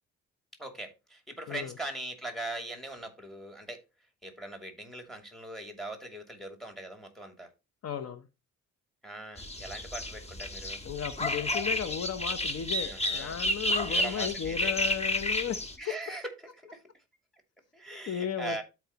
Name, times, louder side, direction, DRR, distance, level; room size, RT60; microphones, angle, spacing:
voice 1, 0.6-3.8 4.2-7.5 9.0-10.8 12.8-13.3 13.8-14.7 15.8-16.3 16.6-16.8 17.7-18.6, right 2 dB, ahead, 2.6 m, -41 dB
voice 2, 7.8-8.3 10.8-15.6 18.1-18.6, left 8 dB, 55° left, 0.9 m, -35 dB
sound 1, 9.4-15.8, left 1 dB, 20° left, 1.3 m, -31 dB
13.0 x 4.8 x 2.9 m
cardioid pair, 90°, 30 cm